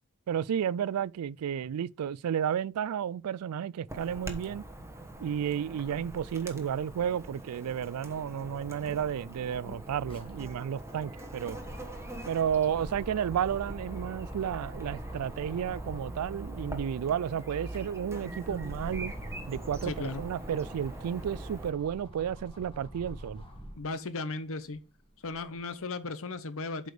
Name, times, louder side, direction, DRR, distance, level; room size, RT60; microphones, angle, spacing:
voice 1, 0.3-4.7 5.2-11.6 12.3-19.1 19.5-23.4, right 8 dB, 75° right, 0.3 m, -32 dB
Chirp tweet / Buzz, 3.9-21.7, right 1 dB, 10° right, 1.1 m, -42 dB
sound 1, 9.3-16.9 17.4-23.9 24.4-25.6, equal, 25° left, 1.7 m, -46 dB
voice 2, 19.8-20.2 23.8-24.8 25.2-26.9, left 3 dB, 65° left, 0.9 m, -36 dB
7.7 x 5.0 x 5.1 m
head